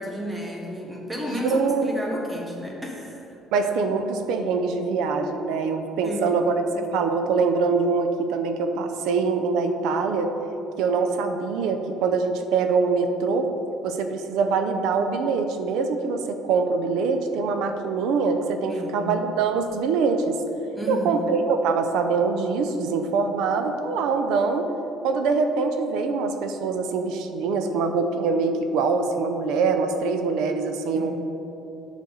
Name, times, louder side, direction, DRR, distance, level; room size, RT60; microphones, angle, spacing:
voice 1, 0.0-3.4 6.0-6.4 6.7-6.8 18.7-19.1 20.7-21.5 30.9-31.1, equal, 10° right, -1 dB, 1.2 m, -32 dB
voice 2, 1.3-1.9 2.2-2.3 3.5-6.5 6.9-10.3 10.8-13.5 13.8-20.4 20.9-24.7 25.0-31.1, right 4 dB, 85° right, 7 dB, 0.6 m, -24 dB
8.1 x 6.4 x 4.0 m, 2.9 s
cardioid pair, 150°, 0 cm